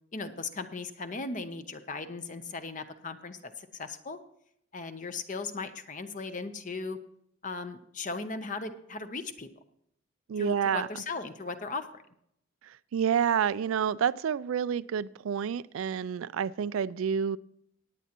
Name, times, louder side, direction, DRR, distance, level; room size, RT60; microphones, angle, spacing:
voice 1, 0.1-4.2 4.7-7.0 7.4-9.5 10.4-12.0, left 3 dB, 40° left, 9 dB, 0.7 m, -37 dB
voice 2, 10.3-10.9 12.9-17.4, right 7 dB, 75° right, 19 dB, 0.3 m, -28 dB
18.0 x 9.3 x 2.9 m, 0.74 s
head